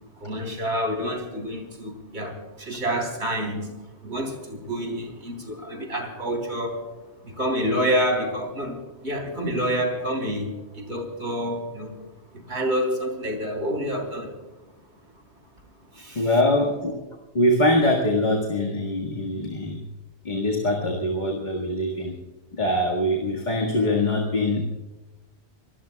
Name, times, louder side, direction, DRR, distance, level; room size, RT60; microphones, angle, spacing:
voice 1, 0.2-3.7 4.0-6.9 7.2-12.0 12.3-14.4 15.9-16.4, equal, 80° right, 3.9 m, -28 dB
voice 2, 16.2-17.0 17.3-19.8 20.2-22.1 22.5-24.7, left 1 dB, 40° left, 2.0 m, -23 dB
26.0 x 19.5 x 2.3 m
omnidirectional pair, 1.2 m